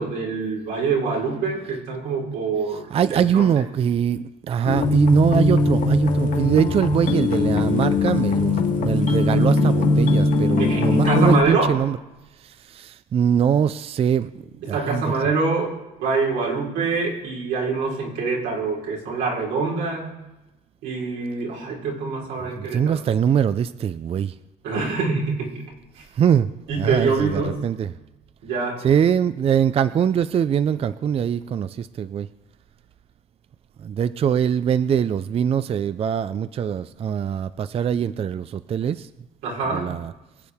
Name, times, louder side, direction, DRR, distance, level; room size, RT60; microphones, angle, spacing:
voice 1, 0.0-3.6 10.6-11.8 14.7-15.7 16.0-20.1 20.8-23.0 24.6-25.6 26.0-26.1 26.7-27.6 28.4-28.8 39.4-39.9, right 4 dB, 90° right, -3 dB, 4.2 m, -25 dB
voice 2, 2.9-12.0 12.4-14.3 14.7-15.0 22.6-24.3 26.2-26.5 26.8-27.9 28.8-32.3 33.8-39.1 39.7-40.1, right 8 dB, 35° right, 14 dB, 0.4 m, -22 dB
sound 1, 4.7-11.4, left 3 dB, 50° left, 1.7 m, -20 dB
23.5 x 8.7 x 3.6 m, 1.0 s
cardioid pair, 110°, 17 cm